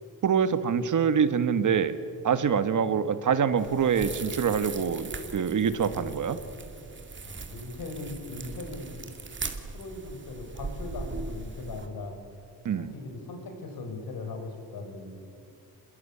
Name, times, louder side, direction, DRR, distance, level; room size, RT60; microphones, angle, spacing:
voice 1, 0.2-2.0 2.2-6.4 12.6-12.9, right 7 dB, 55° right, 11 dB, 1.5 m, -25 dB
sound 1, 3.6-11.9, right 3 dB, 30° right, 2.3 m, -40 dB
voice 2, 5.8-6.3 7.2-9.0 9.7-12.2 12.7-15.2, left 3 dB, 75° left, 5 dB, 5.2 m, -39 dB
27.0 x 22.0 x 8.6 m, 2.4 s
wide cardioid pair, 135°, 36 cm